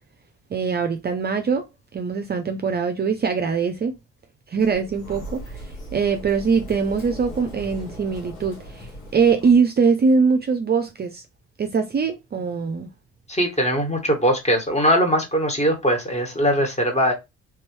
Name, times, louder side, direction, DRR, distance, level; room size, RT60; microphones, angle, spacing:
voice 1, 0.5-1.7 1.9-4.0 4.5-5.4 5.9-11.2 11.6-12.9, right 5 dB, 30° right, 0.5 m, -22 dB
Sliding door, 4.6-9.6, right 1 dB, 85° left, 1.8 m, -38 dB
voice 2, 13.3-17.1, equal, 20° left, 1.6 m, -21 dB
3.4 x 3.0 x 3.2 m
supercardioid pair, 65°, 32 cm